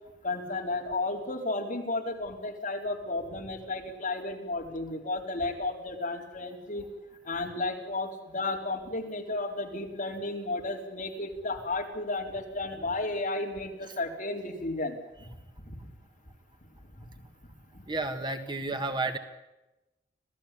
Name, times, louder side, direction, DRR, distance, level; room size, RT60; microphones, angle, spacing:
voice 1, 0.2-6.9 7.2-15.3 15.6-15.8 17.7-17.8, left 2 dB, 45° left, 1 dB, 4.2 m, -33 dB
voice 2, 17.9-19.2, right 2 dB, 25° right, 7 dB, 1.7 m, -31 dB
26.5 x 17.0 x 8.6 m, 0.99 s
head